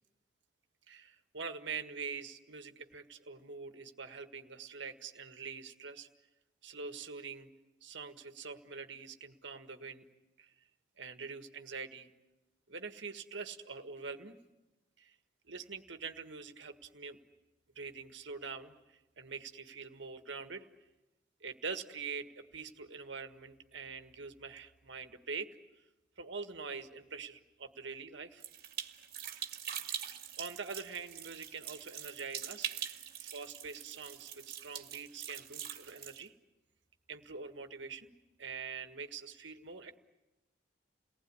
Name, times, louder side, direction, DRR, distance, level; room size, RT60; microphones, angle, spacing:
voice 1, 0.9-6.1 6.6-7.5 7.8-10.1 10.4-10.5 11.0-12.1 12.7-14.4 15.0-15.2 15.5-17.2 17.8-18.8 19.2-20.7 21.4-25.5 26.2-28.4 29.9-32.7 33.2-36.3 37.1-38.1 38.4-40.0, right 5 dB, 70° right, 7 dB, 1.7 m, -44 dB
sound 1, 28.4-36.2, right 10 dB, 50° right, 2.1 m, -43 dB
29.5 x 19.5 x 9.8 m, 1.1 s
head